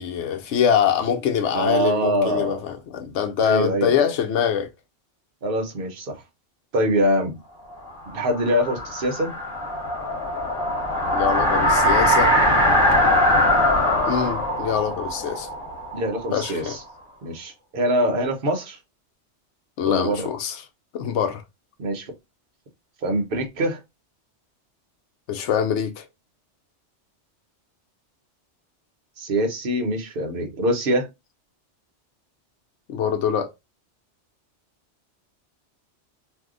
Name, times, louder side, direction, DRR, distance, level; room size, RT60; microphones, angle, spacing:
voice 1, 0.0-4.7 11.1-12.4 14.1-15.5 16.3-16.8 19.8-20.6 20.9-21.4 25.3-26.0 32.9-33.5, left 8 dB, 85° left, 0.9 m, -24 dB
voice 2, 1.5-2.6 3.4-4.1 5.4-6.2 6.7-7.3 8.1-9.3 15.9-16.8 17.2-18.8 19.9-20.3 21.8-22.1 23.0-23.8 29.2-31.1, equal, 55° right, 0.9 m, -24 dB
sound 1, 7.9-16.7, left 1 dB, 30° left, 1.3 m, -21 dB
2.7 x 2.2 x 3.6 m
omnidirectional pair, 1.2 m